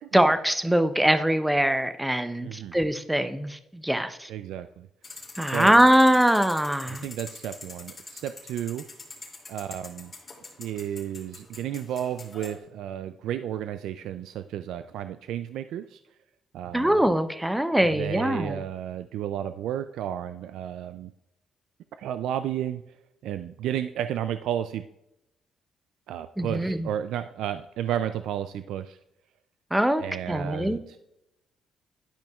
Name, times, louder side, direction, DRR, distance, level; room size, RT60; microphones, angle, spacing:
voice 1, 0.1-4.3 5.4-7.1 16.7-18.6 26.4-26.9 29.7-30.8, right 1 dB, 5° right, 10 dB, 0.6 m, -22 dB
voice 2, 2.4-2.8 4.3-4.9 5.5-5.7 6.9-8.8 9.5-10.1 10.6-16.0 16.5-17.0 17.9-21.1 22.0-22.8 23.2-24.8 26.1-29.0 30.0-31.0, right 10 dB, 85° right, 10 dB, 0.3 m, -32 dB
sound 1, 5.0-12.6, left 3 dB, 35° left, 2.5 m, -44 dB
11.5 x 5.2 x 2.3 m, 0.86 s
cardioid pair, 90°, 0 cm